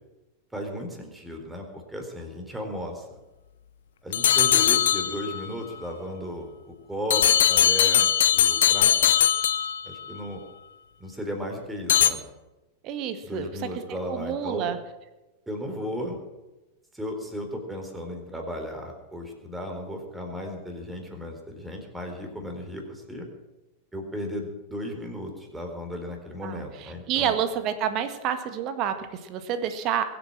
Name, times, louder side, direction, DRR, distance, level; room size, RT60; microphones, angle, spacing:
voice 1, 0.5-3.2 4.0-8.9 9.8-10.4 11.0-12.2 13.2-14.7 15.5-16.2 16.9-23.3 23.9-27.4, equal, 5° right, 3 dB, 4.1 m, -35 dB
sound 1, 4.1-5.5 7.1-10.1 11.9-12.1, left 10 dB, 60° left, 0.8 m, -20 dB
voice 2, 12.8-13.5 14.1-14.8 26.4-26.6 27.1-30.0, right 9 dB, 40° right, 9 dB, 1.7 m, -28 dB
22.0 x 8.6 x 7.6 m, 1.1 s
figure-of-eight pair, 90°, 0 cm